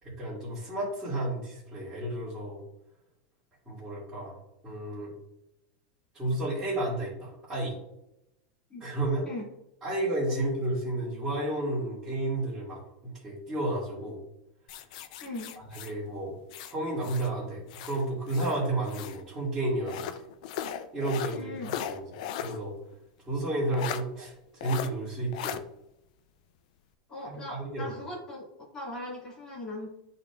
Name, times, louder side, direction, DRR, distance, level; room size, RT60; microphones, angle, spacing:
voice 1, 0.0-2.6 3.6-4.4 4.6-5.1 6.1-7.8 8.8-9.3 9.8-14.2 15.7-16.4 16.7-20.1 20.9-21.5 21.9-22.0 22.4-22.7 23.3-25.6 27.2-27.9, right 1 dB, 15° right, -12 dB, 2.6 m, -32 dB
sound 1, 14.7-17.3 17.7-19.2 19.8-22.6 22.9-23.0 23.7-24.0 24.6-24.9 25.3-25.6, left 10 dB, 65° left, 0.5 m, -38 dB
voice 2, 15.2-15.5 21.3-21.7 27.1-28.5 28.7-29.9, left 1 dB, 15° left, -6 dB, 2.1 m, -39 dB
11.0 x 4.2 x 2.5 m, 0.85 s
supercardioid pair, 155°, 4 cm